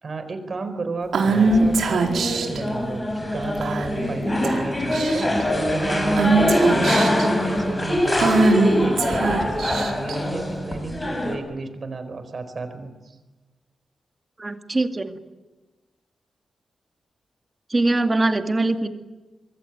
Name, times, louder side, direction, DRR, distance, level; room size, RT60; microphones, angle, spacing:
voice 1, 0.0-5.3 5.7-13.1, right 3 dB, 40° right, 10 dB, 4.5 m, -32 dB
Female speech woman speaking / Whispering, 1.1-2.6 3.6-4.0 4.4-4.6 4.9-5.4 6.2-7.3 8.2-10.1, right 3 dB, 85° right, 4.5 m, -21 dB
sound 1, 1.2-11.4, left 1 dB, 20° left, 6.0 m, -23 dB
voice 2, 14.4-15.1 17.7-18.9, right 2 dB, 20° right, 6 dB, 2.3 m, -22 dB
26.0 x 22.5 x 9.7 m, 1.2 s
wide cardioid pair, 150°, 0 cm